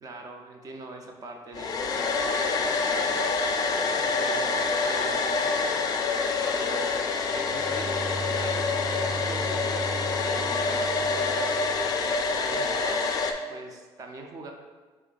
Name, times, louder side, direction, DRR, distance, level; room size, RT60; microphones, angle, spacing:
voice 1, 0.0-3.2 3.7-5.8 6.4-7.0 7.3-9.8 10.2-11.6 11.9-13.0 13.5-14.5, right 2 dB, 35° right, 2 dB, 0.5 m, -41 dB
Domestic sounds home sounds, 1.5-13.3, left 4 dB, 40° left, 0.4 m, -27 dB
Bowed string instrument, 7.3-12.3, right 2 dB, 15° left, 0.8 m, -37 dB
4.2 x 3.1 x 3.9 m, 1.4 s
cardioid pair, 150°, 10 cm